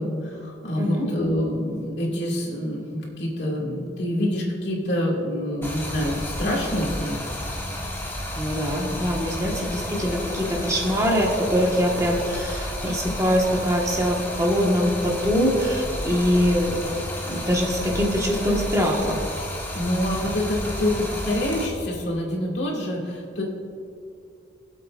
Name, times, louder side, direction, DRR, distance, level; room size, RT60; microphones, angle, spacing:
voice 1, 0.0-7.2 19.7-23.4, left 1 dB, 70° left, -3 dB, 2.3 m, -26 dB
voice 2, 0.8-1.1 8.4-16.8 17.3-19.2, equal, 20° right, -2 dB, 1.5 m, -23 dB
Stream, 5.6-21.7, left 1 dB, 15° left, 1.2 m, -32 dB
21.0 x 7.8 x 2.5 m, 2.4 s
head